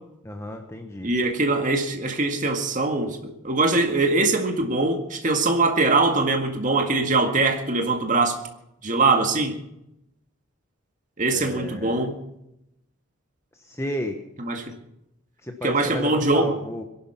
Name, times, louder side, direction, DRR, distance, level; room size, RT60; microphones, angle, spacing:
voice 1, 0.2-1.1 11.3-12.1 13.5-14.2 15.4-16.8, equal, 15° left, 4 dB, 1.1 m, -33 dB
voice 2, 1.0-8.4 8.8-9.6 11.2-12.2 14.4-14.8 15.6-16.5, right 3 dB, 40° right, 4 dB, 1.9 m, -22 dB
21.5 x 11.5 x 5.8 m, 0.84 s
head